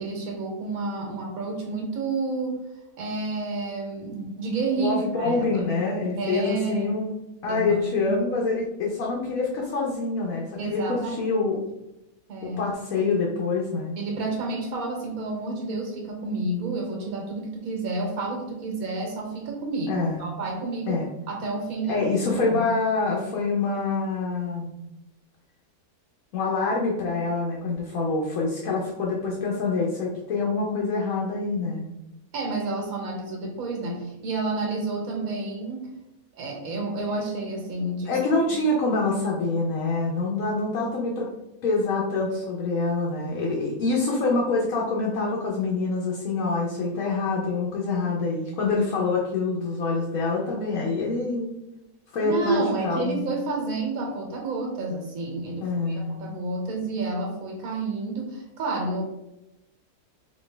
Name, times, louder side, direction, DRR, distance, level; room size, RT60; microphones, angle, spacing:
voice 1, 0.0-2.6 3.0-5.6 6.2-6.9 7.5-8.1 10.6-11.3 12.3-12.6 14.0-22.6 32.3-35.9 36.3-38.2 38.5-38.6 52.2-59.0, right 3 dB, 75° right, 0 dB, 1.4 m, -30 dB
voice 2, 4.8-7.2 7.4-11.6 12.4-14.0 19.9-20.2 20.9-21.1 21.9-24.7 26.3-31.9 38.1-41.3 41.6-51.5 52.1-53.3 55.6-56.2, left 3 dB, 75° left, -3 dB, 1.1 m, -26 dB
4.3 x 2.7 x 3.3 m, 0.91 s
omnidirectional pair, 1.5 m